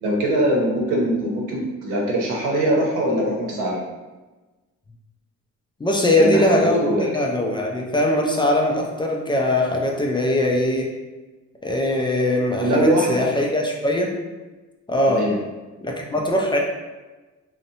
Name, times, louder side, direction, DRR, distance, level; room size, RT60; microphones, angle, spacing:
voice 1, 0.0-3.8 6.0-6.6 6.8-7.1 12.6-13.2 15.0-15.4, right 1 dB, 90° right, -2 dB, 0.7 m, -22 dB
voice 2, 5.8-10.9 11.6-14.2 14.9-15.2 15.8-16.6, left 1 dB, 15° left, 0 dB, 0.3 m, -21 dB
2.6 x 2.1 x 2.7 m, 1.2 s
cardioid pair, 90°, 30 cm